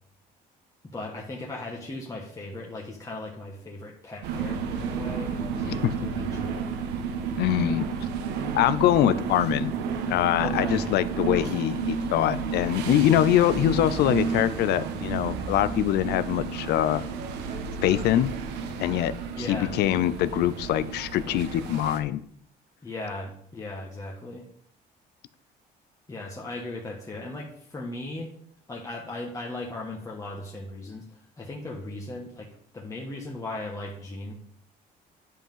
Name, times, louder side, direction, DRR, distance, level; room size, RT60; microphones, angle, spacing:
voice 1, 0.8-6.6 10.4-10.8 19.3-19.7 22.8-24.5 26.1-28.3 28.7-32.5 32.7-34.3, left 2 dB, 20° left, -2 dB, 1.5 m, -37 dB
sound 1, 4.2-22.0, right 5 dB, 90° right, 1.2 m, -31 dB
voice 2, 7.4-7.9 8.5-9.7 10.1-17.0 17.8-18.3 18.8-22.2, left 12 dB, 75° left, 15 dB, 0.6 m, -24 dB
10.0 x 5.7 x 5.6 m, 0.65 s
cardioid pair, 110°, 17 cm